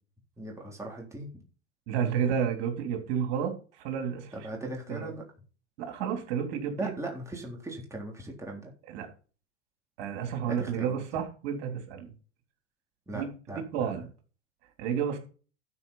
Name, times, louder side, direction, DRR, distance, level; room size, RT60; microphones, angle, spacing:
voice 1, 0.4-1.4 4.3-5.2 6.8-8.7 10.4-11.0 13.1-13.9, right 1 dB, 10° right, 3.8 m, -39 dB
voice 2, 1.9-4.3 4.9-5.1 5.8-6.9 8.9-9.1 10.0-12.1 13.1-13.3 13.5-14.0 14.8-15.2, right 8 dB, 65° right, 3.4 m, -31 dB
12.5 x 5.7 x 5.6 m
hypercardioid pair, 100°, 35 cm